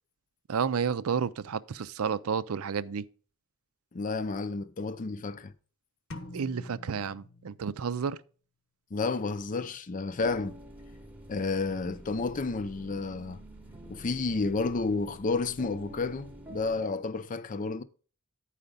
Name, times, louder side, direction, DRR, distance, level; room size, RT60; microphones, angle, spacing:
voice 1, 0.5-3.0 6.3-8.2, right 6 dB, 85° right, 0.5 m, -31 dB
voice 2, 3.9-5.5 8.9-10.6 11.3-13.4 13.9-17.8, left 3 dB, 40° left, 0.5 m, -31 dB
sound 1, 6.1-8.0, left 2 dB, 70° left, 1.0 m, -46 dB
sound 2, 10.2-16.8, equal, 10° right, 0.9 m, -48 dB
9.7 x 5.0 x 5.2 m
head